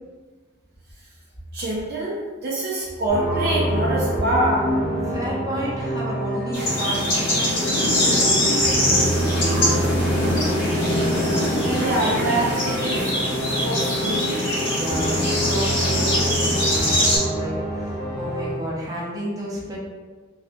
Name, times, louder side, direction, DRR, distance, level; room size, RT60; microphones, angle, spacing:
voice 1, 1.5-4.6 11.6-13.1 13.6-14.4, right 1 dB, 55° right, -5 dB, 0.5 m, -25 dB
sound 1, 3.1-18.5, right 1 dB, 55° left, 1.1 m, -27 dB
voice 2, 5.1-10.4 14.6-19.8, equal, 20° right, -6 dB, 0.7 m, -32 dB
sound 2, 6.5-17.2, left 1 dB, 75° left, 1.4 m, -22 dB
3.1 x 2.7 x 2.6 m, 1.4 s
head